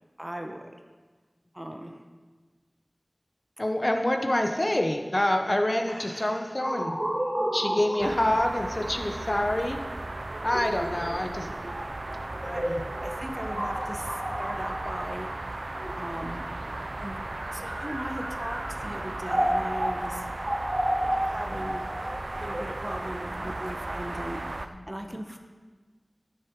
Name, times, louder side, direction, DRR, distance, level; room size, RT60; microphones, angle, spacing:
voice 1, 0.2-0.6 1.5-1.9 5.9-6.6 12.4-15.3 16.0-17.2 17.5-20.3 21.0-21.8 22.4-25.4, right 1 dB, 25° right, 4 dB, 1.0 m, -38 dB
voice 2, 3.6-7.0 7.5-9.8 10.4-11.5 12.5-12.8 21.2-21.4 24.7-25.1, left 1 dB, 40° left, 4 dB, 0.8 m, -27 dB
sound 1, 6.6-16.4 17.2-24.1, right 1 dB, 45° right, 1.7 m, -33 dB
sound 2, 8.0-24.7, right 2 dB, 75° right, 0.5 m, -36 dB
10.5 x 6.6 x 4.6 m, 1.4 s
wide cardioid pair, 45°, 0 cm